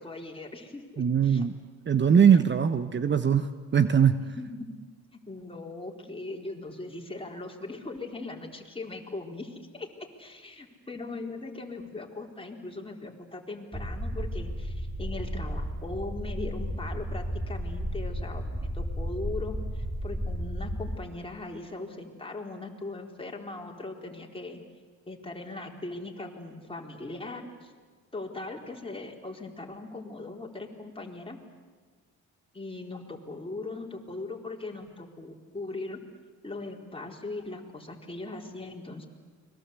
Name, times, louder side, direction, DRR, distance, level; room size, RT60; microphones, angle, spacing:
voice 1, 0.0-1.5 4.4-4.7 5.1-9.9 10.2-24.6 25.1-27.7 28.1-31.4 32.5-36.0 36.4-39.1, left 2 dB, 20° left, 1 dB, 4.3 m, -39 dB
voice 2, 1.0-1.5 1.9-4.2, right 7 dB, 35° right, 11 dB, 1.1 m, -21 dB
sound 1, 13.7-21.0, equal, 5° right, 5.2 m, -33 dB
30.0 x 22.0 x 8.4 m, 1.5 s
cardioid pair, 90°, 30 cm